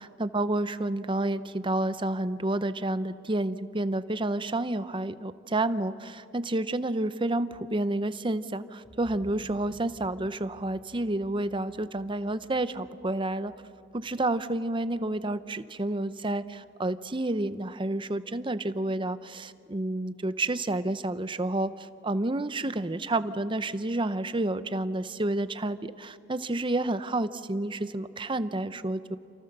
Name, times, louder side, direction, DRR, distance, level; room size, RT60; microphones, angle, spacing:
voice 1, 0.0-13.5 13.9-29.2, right 2 dB, 25° right, 13 dB, 0.7 m, -30 dB
sound 1, 8.8-16.7 17.1-17.2, equal, 10° left, 6.3 m, -56 dB
29.0 x 28.0 x 6.8 m, 2.6 s
head